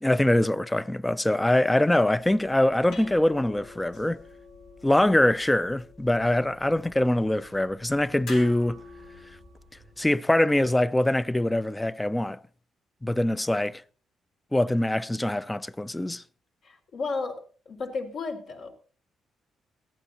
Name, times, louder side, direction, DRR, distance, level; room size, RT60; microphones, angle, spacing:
voice 1, 0.0-4.2 4.8-8.8 10.0-12.4 13.0-13.8 14.5-16.2, left 1 dB, 10° left, 0.6 m, -23 dB
sound 1, 2.2-10.1, left 3 dB, 90° left, 5.1 m, -47 dB
voice 2, 16.6-18.7, left 4 dB, 65° left, 4.1 m, -33 dB
21.0 x 15.0 x 2.8 m
cardioid pair, 90°, 0 cm